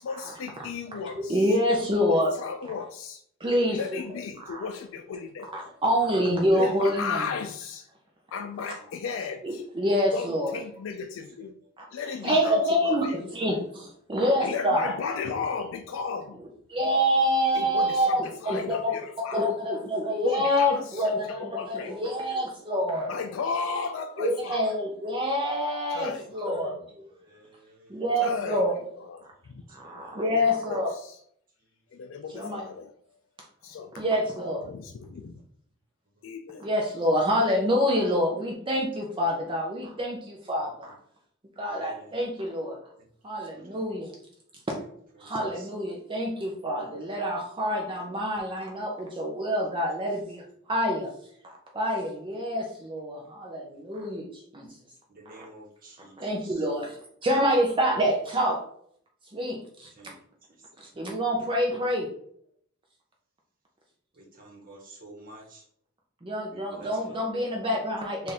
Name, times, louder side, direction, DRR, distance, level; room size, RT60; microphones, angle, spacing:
voice 1, 0.0-1.4 2.1-3.2 3.7-5.5 6.5-7.8 8.3-9.6 10.1-11.5 11.9-13.3 14.4-16.4 17.5-18.2 18.4-19.4 20.2-21.1 21.4-22.0 23.1-24.7 26.0-26.9 28.2-28.6 29.1-29.2 30.4-31.2 31.9-32.9 33.6-34.0 34.7-35.3 36.2-36.7, left 5 dB, 65° left, 6 dB, 0.4 m, -35 dB
voice 2, 0.9-2.3 3.4-4.0 4.5-4.6 5.5-7.3 9.4-10.6 11.8-11.9 12.2-14.9 16.4-19.0 19.3-23.1 24.2-26.8 27.9-28.7 29.7-30.9 32.3-32.7 33.9-34.7 36.5-40.9 41.6-42.8 43.2-44.1 45.2-51.1 51.4-54.8 56.2-58.6 59.3-59.9 60.8-62.1 66.2-68.3, equal, 25° right, 0 dB, 0.6 m, -27 dB
voice 3, 27.3-28.0 29.7-30.2 41.7-42.2 43.5-43.7 45.2-45.3 45.5-45.7 54.1-54.3 55.1-56.2 56.4-56.5 60.0-60.1 64.2-65.6 66.5-67.7, right 2 dB, 45° right, -1 dB, 1.1 m, -51 dB
3.5 x 2.5 x 4.1 m, 0.64 s
head